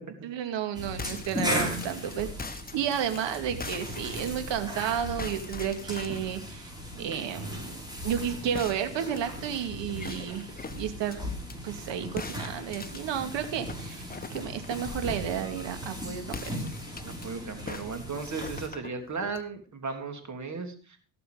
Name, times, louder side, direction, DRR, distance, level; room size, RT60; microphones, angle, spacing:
voice 1, 0.2-6.7 7.0-11.3 11.6-16.6, right 9 dB, 60° right, 8 dB, 2.4 m, -32 dB
sound 1, 0.7-18.7, equal, 10° right, 5.8 m, -37 dB
sound 2, 1.0-4.8 5.2-6.4 8.5-11.6 12.2-15.0 16.3-17.3 17.7-19.5, left 4 dB, 20° left, 1.3 m, -42 dB
voice 2, 6.9-7.5 17.0-20.7, right 4 dB, 35° right, 6 dB, 3.4 m, -36 dB
18.0 x 6.8 x 5.1 m, 0.39 s
hypercardioid pair, 65°, 49 cm